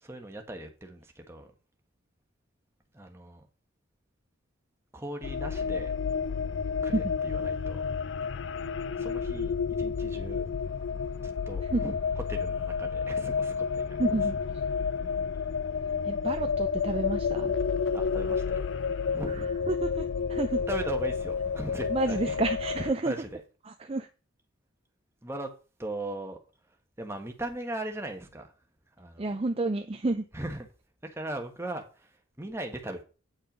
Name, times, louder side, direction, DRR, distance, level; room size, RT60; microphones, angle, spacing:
voice 1, 0.0-1.5 2.9-3.5 4.9-5.9 6.8-7.8 9.0-10.4 11.2-12.0 12.3-14.2 17.9-18.6 19.1-19.5 20.7-22.4 23.0-23.4 25.2-25.5 25.8-26.4 27.0-28.5 29.0-29.2 30.3-30.7 31.0-33.0, right 1 dB, 10° right, 1.2 m, -39 dB
sound 1, 5.2-22.9, left 6 dB, 55° left, 0.4 m, -30 dB
voice 2, 14.0-14.4 16.0-17.5 19.7-20.6 21.9-23.1 23.6-24.1 29.2-30.2, right 2 dB, 25° right, 0.5 m, -30 dB
8.8 x 5.5 x 5.3 m
head